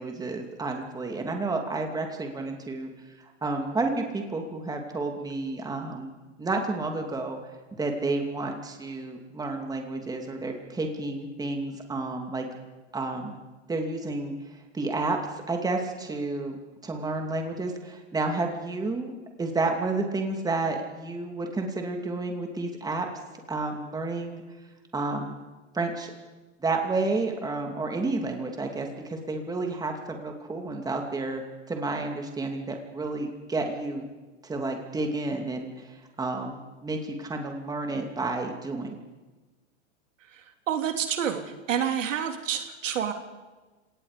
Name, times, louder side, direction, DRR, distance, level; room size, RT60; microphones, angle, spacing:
voice 1, 0.0-2.9 3.2-6.1 6.4-7.5 7.8-12.5 12.9-13.4 13.7-15.2 15.5-16.6 16.8-19.1 19.4-23.1 23.5-24.4 24.9-25.4 25.7-26.1 26.6-31.4 31.7-34.1 34.4-39.0, right 3 dB, 10° right, 3 dB, 2.7 m, -31 dB
voice 2, 40.3-43.1, right 8 dB, 80° right, 5 dB, 2.9 m, -29 dB
29.5 x 18.5 x 5.2 m, 1.2 s
hypercardioid pair, 135°, 37 cm